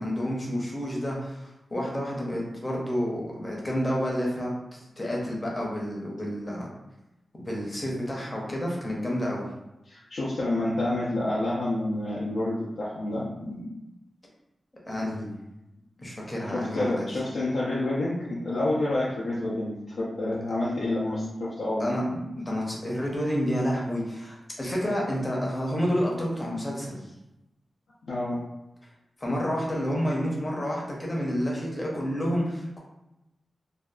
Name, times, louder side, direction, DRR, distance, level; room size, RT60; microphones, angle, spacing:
voice 1, 0.0-6.7 7.3-9.4 14.8-15.3 16.0-17.1 21.8-27.0 29.2-32.8, equal, 20° left, -3 dB, 0.6 m, -29 dB
voice 2, 9.9-13.7 16.5-21.9 28.0-28.4, left 1 dB, 90° left, -8 dB, 0.5 m, -28 dB
2.5 x 2.3 x 2.3 m, 0.93 s
wide cardioid pair, 175°, 0 cm